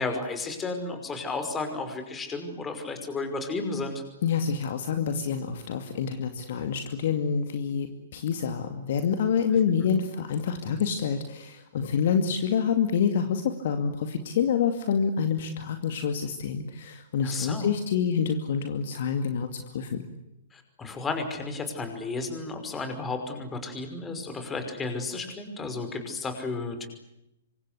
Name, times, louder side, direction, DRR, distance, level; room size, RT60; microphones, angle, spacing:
voice 1, 0.0-4.0 17.2-17.7 20.5-26.9, left 3 dB, 15° left, 7 dB, 5.5 m, -33 dB
voice 2, 4.2-20.1, left 7 dB, 50° left, 7 dB, 2.4 m, -27 dB
27.0 x 25.5 x 8.3 m, 0.85 s
figure-of-eight pair, 115°, 0 cm